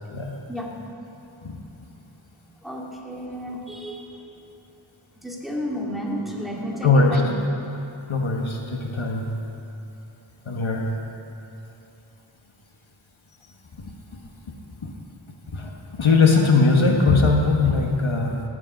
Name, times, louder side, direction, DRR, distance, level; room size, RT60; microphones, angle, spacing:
voice 1, 2.6-4.2 5.2-7.3 7.7-7.8, equal, ahead, -3 dB, 2.4 m, -32 dB
voice 2, 6.8-7.2 8.1-9.4 10.5-11.0 14.8-14.9 15.5-18.4, left 3 dB, 70° left, 1 dB, 1.4 m, -20 dB
16.0 x 10.5 x 5.2 m, 2.8 s
wide cardioid pair, 45°, 50 cm